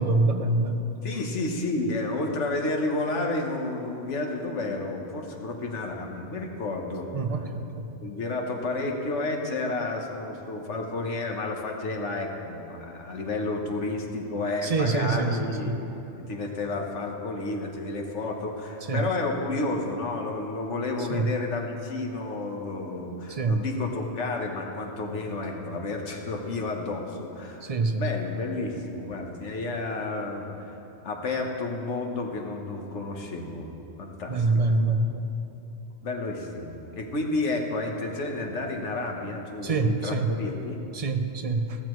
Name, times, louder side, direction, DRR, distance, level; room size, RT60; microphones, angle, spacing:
voice 1, 0.0-0.8 7.1-7.8 14.6-15.7 18.9-19.0 21.1-21.3 23.3-23.6 27.6-28.1 34.3-35.3 39.6-40.3 40.9-41.8, right 3 dB, 40° right, 6 dB, 0.6 m, -25 dB
voice 2, 1.0-7.1 8.0-15.8 16.3-30.8 31.0-33.7 34.0-34.8 36.0-40.8, left 2 dB, 85° left, 2 dB, 1.5 m, -31 dB
16.0 x 13.0 x 3.1 m, 3.0 s
omnidirectional pair, 1.2 m